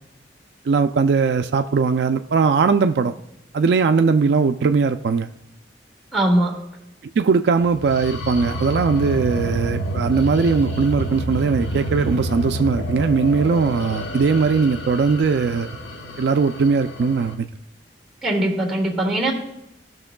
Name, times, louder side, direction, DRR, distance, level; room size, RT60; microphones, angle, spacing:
voice 1, 0.7-3.1 3.5-5.3 7.2-15.7 16.2-17.5, right 5 dB, 60° right, 7 dB, 0.3 m, -19 dB
voice 2, 6.1-6.6 18.2-19.3, right 1 dB, ahead, 1 dB, 2.0 m, -20 dB
sound 1, 7.6-17.3, equal, 75° left, 1.0 m, -29 dB
16.5 x 6.1 x 2.2 m, 0.85 s
head